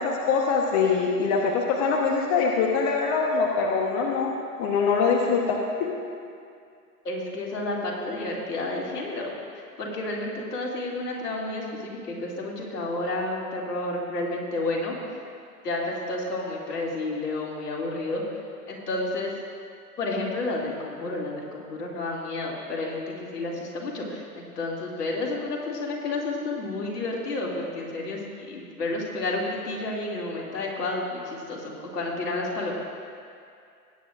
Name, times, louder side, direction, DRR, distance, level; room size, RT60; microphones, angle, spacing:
voice 1, 0.0-4.3 4.6-5.9, left 5 dB, 35° left, 0 dB, 1.2 m, -23 dB
voice 2, 7.0-14.9 15.6-18.2 18.7-19.3 20.0-32.7, left 2 dB, 80° left, -3 dB, 2.7 m, -31 dB
19.0 x 9.3 x 2.5 m, 2.4 s
hypercardioid pair, 115°, 46 cm